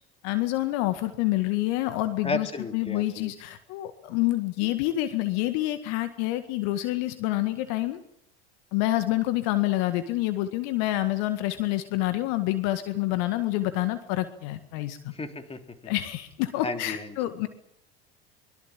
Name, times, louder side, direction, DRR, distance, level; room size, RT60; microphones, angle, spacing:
voice 1, 0.2-8.0 8.7-15.1 15.9-17.5, left 16 dB, 60° left, 10 dB, 1.9 m, -27 dB
voice 2, 2.2-3.3 15.1-15.9 16.6-17.2, left 3 dB, 20° left, 7 dB, 3.4 m, -34 dB
24.5 x 22.5 x 7.6 m, 0.74 s
figure-of-eight pair, 70°, 31 cm